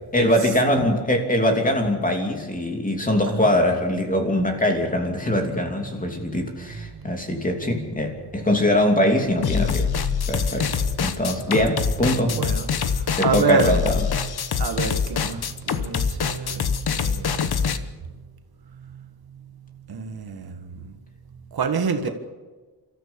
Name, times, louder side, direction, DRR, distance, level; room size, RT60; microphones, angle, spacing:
voice 1, 0.1-9.9 10.3-10.7 11.0-12.4 13.2-14.1, left 1 dB, 20° left, 3 dB, 2.9 m, -22 dB
sound 1, 9.4-17.8, left 6 dB, 65° left, 1.2 m, -24 dB
voice 2, 9.8-11.0 11.5-11.7 12.3-13.7 14.6-17.9 18.8-19.0 19.9-20.9 21.5-22.1, right 5 dB, 65° right, 7 dB, 1.7 m, -28 dB
29.0 x 14.0 x 7.0 m, 1.3 s
wide cardioid pair, 155°, 41 cm